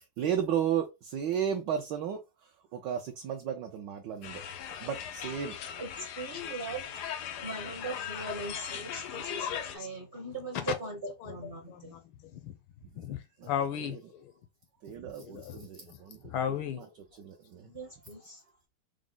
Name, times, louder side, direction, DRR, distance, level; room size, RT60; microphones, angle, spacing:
voice 1, 0.0-4.4 4.8-5.5 13.4-13.5 13.8-14.0 14.8-16.2 16.5-16.9 17.2-17.7, right 8 dB, 70° right, 1.1 m, -34 dB
sound 1, 4.2-9.8, left 8 dB, 90° left, 0.9 m, -39 dB
voice 2, 6.2-12.0 17.7-18.4, right 3 dB, 40° right, 0.8 m, -40 dB
voice 3, 11.7-12.5 12.9-14.3 15.2-16.0 16.2-16.9, left 9 dB, 75° left, 1.3 m, -36 dB
4.8 x 2.1 x 3.7 m
omnidirectional pair, 2.4 m